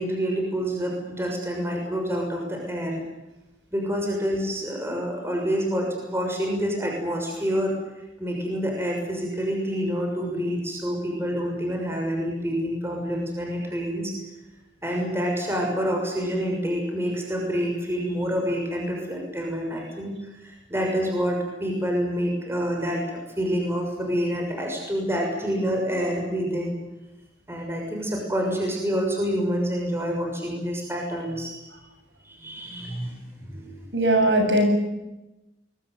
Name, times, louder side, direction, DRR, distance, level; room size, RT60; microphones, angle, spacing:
voice 1, 0.0-3.0 3.7-7.8 8.2-14.1 14.8-26.8 27.5-31.5 32.2-33.8, equal, 15° right, 0 dB, 6.5 m, -27 dB
voice 2, 33.9-34.8, right 1 dB, 85° right, 4 dB, 7.7 m, -19 dB
23.5 x 22.0 x 9.5 m, 1.0 s
head